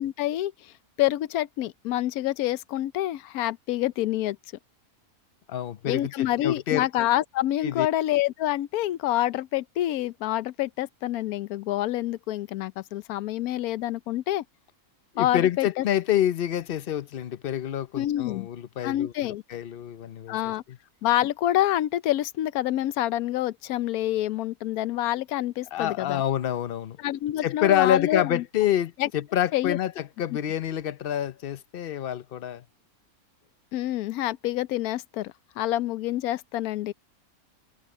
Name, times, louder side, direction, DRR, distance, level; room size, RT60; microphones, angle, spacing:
voice 1, 0.0-4.4 5.8-14.4 15.2-15.8 17.9-18.5 18.8-19.4 20.3-20.6 21.0-26.2 27.0-28.4 29.0-29.1 29.5-29.8 33.7-36.9, left 14 dB, 85° left, 1.1 m, -27 dB
voice 2, 5.5-6.9 7.6-7.9 15.1-19.1 19.5-20.4 20.7-20.8 25.7-27.0 27.4-32.6, left 11 dB, 50° left, 0.8 m, -27 dB
omnidirectional pair, 1.5 m